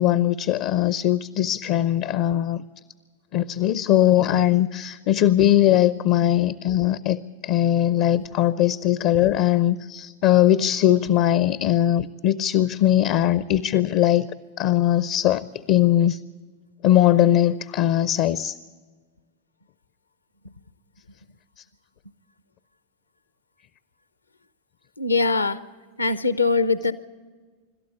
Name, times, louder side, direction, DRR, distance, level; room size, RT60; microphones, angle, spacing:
voice 1, 0.0-2.6 3.3-14.3 14.6-16.2 16.8-18.5, left 12 dB, 45° left, 18 dB, 0.5 m, -20 dB
voice 2, 25.0-25.6 26.0-26.9, left 4 dB, 80° left, 16 dB, 0.8 m, -21 dB
26.0 x 12.5 x 8.0 m, 1.4 s
figure-of-eight pair, 90°, 0 cm